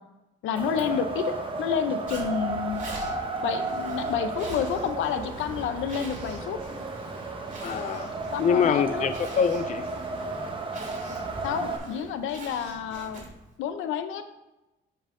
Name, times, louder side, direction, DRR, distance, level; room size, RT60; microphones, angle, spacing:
voice 1, 0.4-2.9 3.4-6.6 8.3-9.1 11.4-13.2 13.6-14.2, left 7 dB, 85° left, 9 dB, 0.7 m, -29 dB
Wind, 0.6-11.8, right 3 dB, 25° right, 1.2 m, -33 dB
Zipper (clothing), 2.1-13.5, right 2 dB, 40° right, 2.4 m, -44 dB
sound 1, 2.3-13.2, right 5 dB, 60° right, 1.5 m, -49 dB
voice 2, 7.6-9.8, left 7 dB, 40° left, 11 dB, 0.4 m, -25 dB
7.5 x 5.4 x 3.7 m, 0.97 s
cardioid pair, 90°, 20 cm